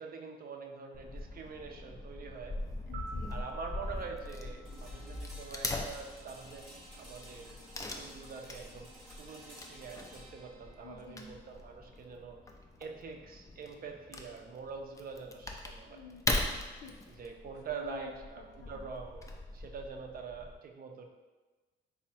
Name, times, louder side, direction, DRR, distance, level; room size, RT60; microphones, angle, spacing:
voice 1, 0.0-2.6 3.3-6.7 6.9-12.4 12.8-16.0 17.1-19.2 19.5-21.1, right 5 dB, 45° right, 3 dB, 0.5 m, -45 dB
Wood / Tearing, 0.9-20.6, left 2 dB, 15° left, 0.4 m, -41 dB
voice 2, 2.9-3.4 10.8-11.3 15.9-16.4 16.8-17.2 17.7-18.1 18.4-18.8, left 4 dB, 60° left, 1 dB, 0.6 m, -49 dB
sound 1, 2.9-5.5, right 2 dB, 90° right, 0.7 m, -49 dB
sound 2, 4.6-14.5, equal, ahead, 0.8 m, -55 dB
3.5 x 2.1 x 4.1 m, 1.3 s
cardioid pair, 90°, 20 cm